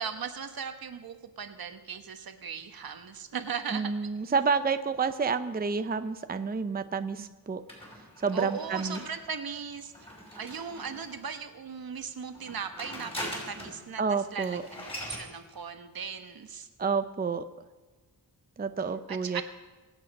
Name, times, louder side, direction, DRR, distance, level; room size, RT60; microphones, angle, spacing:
voice 1, 0.0-4.1 7.2-7.3 8.3-9.9 10.3-14.0 14.3-16.7 19.1-19.4, right 6 dB, 70° right, 8 dB, 1.3 m, -38 dB
voice 2, 3.7-7.6 8.2-9.0 14.0-14.6 16.8-17.5 18.6-19.4, right 5 dB, 25° right, 10 dB, 0.6 m, -29 dB
sound 1, 7.7-11.3 12.3-13.8 14.1-14.2 14.4-15.3, equal, 15° left, 5.6 m, -42 dB
24.0 x 8.3 x 5.4 m, 1.3 s
wide cardioid pair, 90°, 37 cm